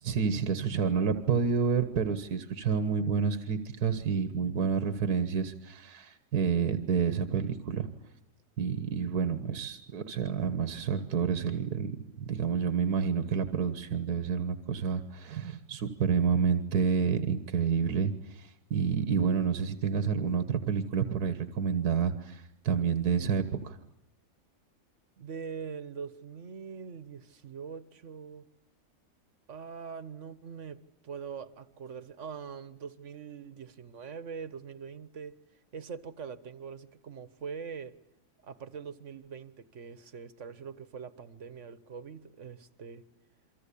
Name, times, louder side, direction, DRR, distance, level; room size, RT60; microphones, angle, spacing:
voice 1, 0.0-7.9 8.6-23.8, right 6 dB, 75° right, 10 dB, 1.8 m, -29 dB
voice 2, 25.2-28.4 29.5-35.4 35.7-37.9 38.4-43.0, right 6 dB, 50° right, 14 dB, 1.6 m, -43 dB
28.5 x 24.0 x 8.6 m, 0.73 s
omnidirectional pair, 1.7 m